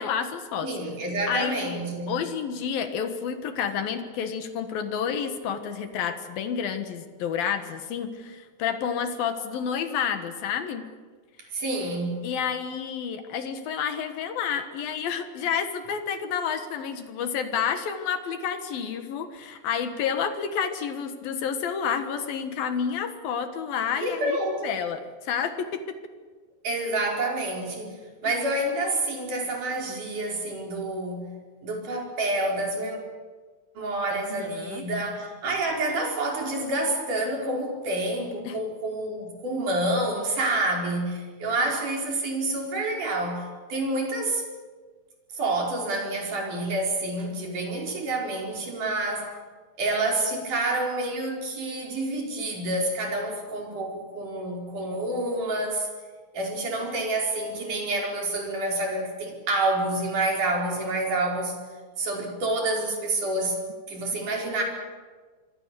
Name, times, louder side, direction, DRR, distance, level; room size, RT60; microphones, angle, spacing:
voice 1, 0.0-0.7 1.3-10.8 12.2-24.4 24.6-25.8 28.2-28.3 34.1-34.8 38.4-38.6, left 7 dB, 65° left, 8 dB, 2.9 m, -30 dB
voice 2, 0.6-2.1 11.5-12.3 24.0-24.7 26.6-31.3 31.6-33.0 33.8-44.4 45.3-49.4 49.8-55.9 56.3-61.5 62.0-63.6 63.9-64.6, right 2 dB, 45° right, 0 dB, 5.8 m, -28 dB
25.5 x 24.0 x 6.9 m, 1.4 s
omnidirectional pair, 5.2 m